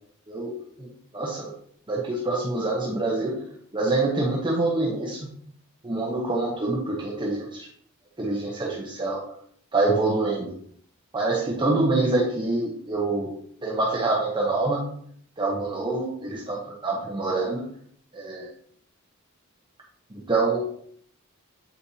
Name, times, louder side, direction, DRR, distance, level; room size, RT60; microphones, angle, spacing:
voice 1, 0.3-1.5 1.9-3.4 3.7-5.3 5.8-7.7 8.2-9.2 9.7-10.5 11.1-13.3 13.6-14.8 15.4-17.7 18.1-18.5 20.1-20.8, right 2 dB, 20° right, -3 dB, 0.8 m, -26 dB
8.1 x 4.2 x 2.7 m, 0.64 s
head